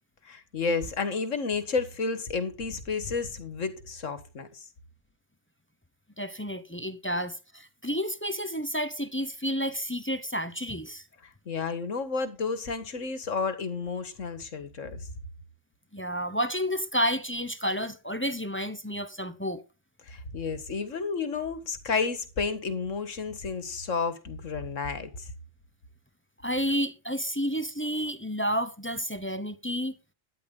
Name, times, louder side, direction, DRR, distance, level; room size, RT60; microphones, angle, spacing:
voice 1, 0.2-4.7 11.5-15.1 20.0-25.3, left 4 dB, 85° left, 2.0 m, -31 dB
voice 2, 6.2-11.0 15.9-19.6 26.4-29.9, equal, 10° left, 0.8 m, -30 dB
12.5 x 10.0 x 3.8 m
omnidirectional pair, 1.3 m